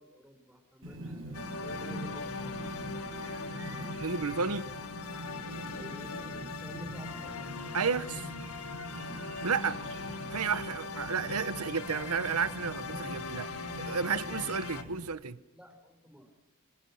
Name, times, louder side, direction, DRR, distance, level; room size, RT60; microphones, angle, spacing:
voice 1, 0.0-2.8 5.7-7.4 9.7-9.8 13.9-14.6 15.5-16.3, equal, 5° right, 5.2 m, -52 dB
Chirp tweet, 0.8-15.1, right 1 dB, 65° right, 6.0 m, -44 dB
sound 1, 1.3-14.8, left 4 dB, 90° left, 1.7 m, -40 dB
voice 2, 4.0-4.7 7.7-8.3 9.4-9.8 10.3-13.5 13.8-15.4, right 5 dB, 80° right, 1.0 m, -32 dB
26.5 x 24.0 x 6.4 m
head